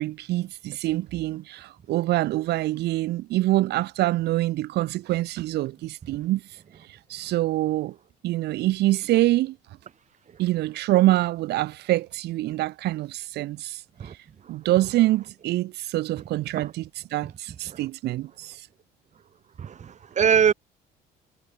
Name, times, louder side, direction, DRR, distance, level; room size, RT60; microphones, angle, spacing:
voice 1, 0.0-8.0 8.2-9.6 10.4-18.7, right 16 dB, 80° right, 5.1 m, -25 dB
voice 2, 19.6-20.5, right 8 dB, 45° right, 7.7 m, -22 dB
cardioid pair, 110°, 17 cm